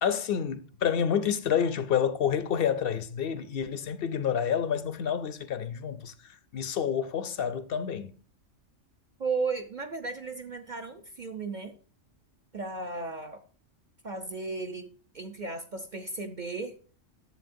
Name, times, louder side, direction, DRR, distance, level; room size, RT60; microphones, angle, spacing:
voice 1, 0.0-8.1, left 8 dB, 60° left, 0.7 m, -29 dB
voice 2, 9.2-11.8 12.5-13.4 14.0-16.8, right 4 dB, 50° right, 0.6 m, -35 dB
11.0 x 7.3 x 2.6 m
omnidirectional pair, 1.4 m